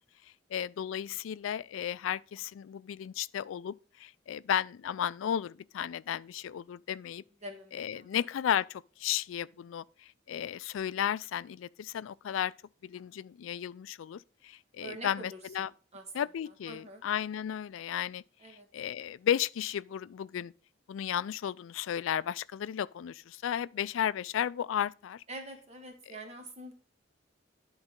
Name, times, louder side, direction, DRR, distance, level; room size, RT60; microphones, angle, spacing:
voice 1, 0.5-3.7 4.0-7.2 7.7-9.8 10.3-12.5 12.8-15.7 16.1-18.2 18.7-20.5 20.9-25.2, left 9 dB, 85° left, 0.3 m, -34 dB
voice 2, 7.4-8.1 14.8-16.0 16.5-17.0 18.4-18.7 25.3-26.7, right 1 dB, 35° right, 1.4 m, -46 dB
10.5 x 4.0 x 5.2 m
head